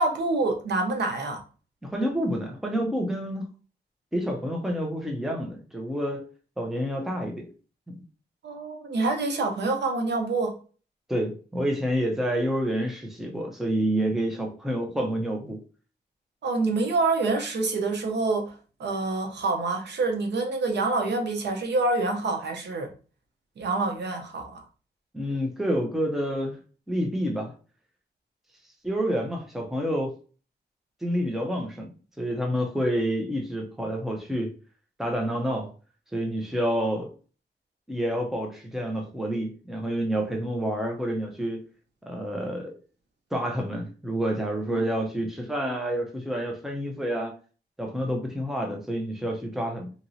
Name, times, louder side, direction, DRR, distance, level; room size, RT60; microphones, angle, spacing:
voice 1, 0.0-1.4 8.4-10.6 16.4-18.5 18.8-22.9 23.6-24.6 44.7-44.8, right 3 dB, 85° right, 0.8 m, -26 dB
voice 2, 1.8-3.5 4.1-6.3 6.6-7.5 7.9-8.0 11.1-15.6 25.1-26.6 26.9-27.5 28.8-30.2 31.0-34.5 35.0-35.7 36.1-37.1 37.9-41.7 42.1-42.8 43.3-47.4 47.8-49.9, equal, ahead, 0.6 m, -28 dB
2.9 x 2.8 x 2.6 m
wide cardioid pair, 165°, 17 cm